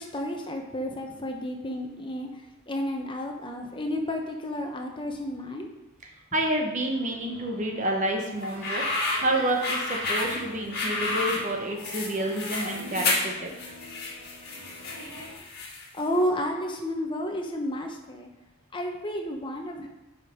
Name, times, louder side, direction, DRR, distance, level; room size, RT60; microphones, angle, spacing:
voice 1, 0.0-2.3 2.7-5.7 15.9-18.3 18.7-19.9, equal, 20° left, 2 dB, 0.9 m, -31 dB
voice 2, 6.3-8.8 9.2-13.5, right 1 dB, 35° right, 1 dB, 0.9 m, -29 dB
sound 1, 6.8-15.4, equal, 80° right, 1.8 m, -45 dB
sound 2, 8.4-16.0, left 2 dB, 45° left, 1.7 m, -30 dB
7.3 x 5.2 x 5.1 m, 0.96 s
head